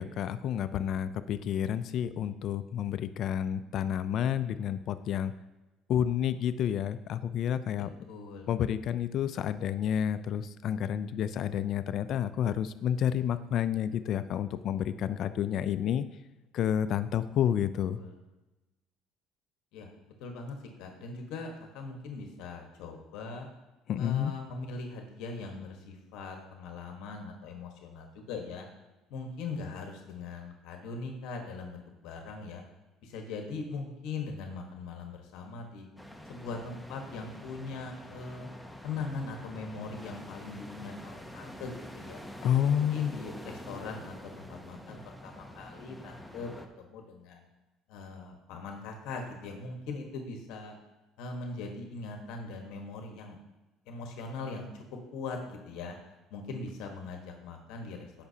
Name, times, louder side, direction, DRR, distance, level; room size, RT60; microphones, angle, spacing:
voice 1, 0.0-5.3 5.9-7.9 8.5-16.0 16.5-18.0 23.9-24.3 42.4-43.1, left 9 dB, 55° left, 12 dB, 0.4 m, -30 dB
voice 2, 8.1-8.5 17.8-18.1 19.7-19.9 20.2-23.5 24.0-28.7 29.1-32.6 33.0-35.9 36.3-38.5 38.8-42.2 42.6-47.5 47.9-50.8 51.2-53.4 53.9-54.8 55.1-56.0 56.3-58.3, left 4 dB, 75° left, 3 dB, 1.3 m, -40 dB
sound 1, 36.0-46.7, left 1 dB, ahead, 0.8 m, -46 dB
16.5 x 5.9 x 2.8 m, 1.1 s
cardioid pair, 120°, 0 cm